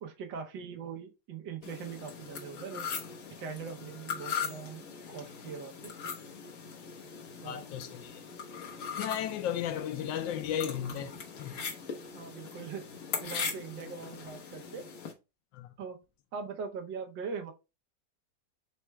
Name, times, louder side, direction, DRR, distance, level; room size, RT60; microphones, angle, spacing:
voice 1, 0.0-2.8 3.4-5.9 7.4-7.6 12.1-12.8 13.2-14.9 15.8-16.0 16.3-17.5, right 6 dB, 80° right, 1.5 m, -41 dB
sound 1, 1.6-15.1, left 6 dB, 55° left, 1.2 m, -40 dB
voice 2, 7.4-8.2 9.0-11.6 15.5-15.7, left 10 dB, 90° left, 1.3 m, -35 dB
4.2 x 2.3 x 4.3 m
omnidirectional pair, 2.0 m